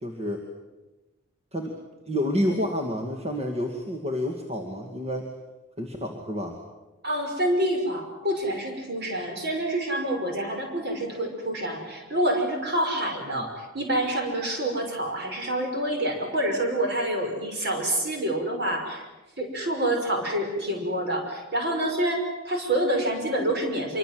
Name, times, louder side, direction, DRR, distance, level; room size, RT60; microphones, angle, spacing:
voice 1, 0.0-0.5 1.5-1.8 2.1-5.3 5.8-6.6 13.2-13.5, equal, 30° right, 2 dB, 2.2 m, -29 dB
voice 2, 7.0-19.0 19.4-24.0, right 1 dB, 50° right, 3 dB, 5.9 m, -27 dB
26.5 x 24.5 x 7.8 m, 1.1 s
head